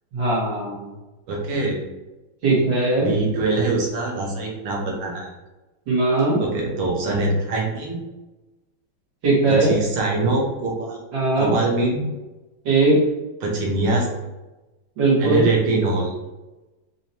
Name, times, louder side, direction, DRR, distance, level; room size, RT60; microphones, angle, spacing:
voice 1, 0.1-0.9 2.4-3.1 5.9-6.4 9.2-9.7 11.1-11.5 12.6-13.0 15.0-15.5, right 2 dB, 65° right, -8 dB, 2.3 m, -19 dB
voice 2, 1.3-1.8 3.0-5.3 6.4-8.0 9.5-11.0 11.4-12.1 13.4-14.1 15.2-16.1, right 3 dB, 90° right, -1 dB, 1.8 m, -23 dB
4.9 x 2.9 x 2.7 m, 1.1 s
omnidirectional pair, 2.3 m